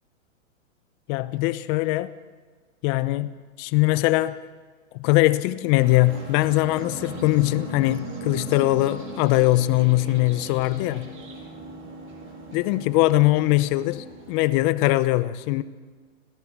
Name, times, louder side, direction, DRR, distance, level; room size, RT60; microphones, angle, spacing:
voice 1, 1.1-2.1 2.8-4.4 4.9-11.1 12.5-15.6, left 18 dB, 40° left, 1.0 m, -21 dB
sound 1, 5.7-14.4, right 3 dB, 30° right, 7.5 m, -39 dB
26.5 x 17.5 x 6.2 m
hypercardioid pair, 125°, 39 cm